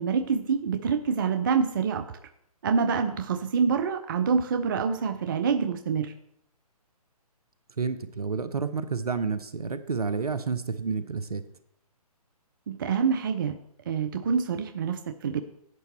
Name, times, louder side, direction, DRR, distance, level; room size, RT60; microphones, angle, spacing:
voice 1, 0.0-2.0 2.6-6.1 12.7-13.6 13.9-15.4, right 6 dB, 35° right, 9 dB, 0.4 m, -26 dB
voice 2, 7.8-11.4, right 5 dB, 70° right, 12 dB, 0.8 m, -30 dB
8.2 x 8.0 x 4.3 m, 0.72 s
figure-of-eight pair, 135°, 20 cm